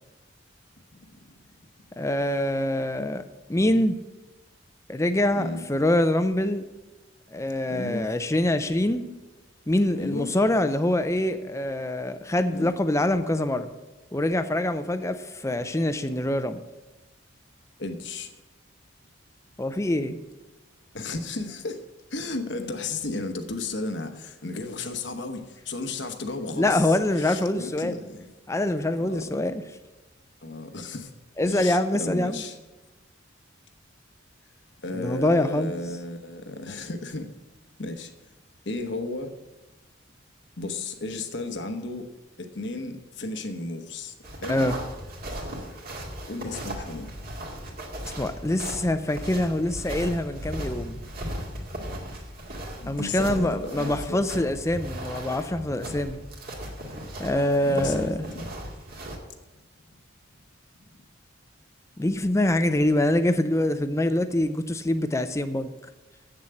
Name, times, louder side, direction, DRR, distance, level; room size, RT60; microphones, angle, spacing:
voice 1, 2.0-3.2 3.5-4.0 4.9-6.6 7.3-9.1 9.7-13.7 14.1-16.6 19.6-20.2 26.6-28.0 28.5-29.5 31.4-32.4 34.9-35.7 44.5-44.8 48.2-51.0 52.9-56.2 57.2-58.2 62.0-65.7, left 1 dB, 15° left, 10 dB, 0.5 m, -25 dB
voice 2, 5.3-5.6 7.7-8.0 10.0-10.3 12.5-12.7 17.8-18.3 20.9-21.8 22.1-28.3 29.0-29.4 30.4-31.1 31.4-32.6 34.8-37.3 37.8-38.1 38.6-39.4 40.6-42.1 42.4-44.1 44.4-44.6 46.3-47.1 52.8-54.2 57.0-57.1 57.6-58.4, left 2 dB, 60° left, 6 dB, 1.0 m, -34 dB
sound 1, 44.2-59.2, right 1 dB, 50° right, 2.0 m, -37 dB
8.1 x 7.1 x 8.0 m, 1.1 s
head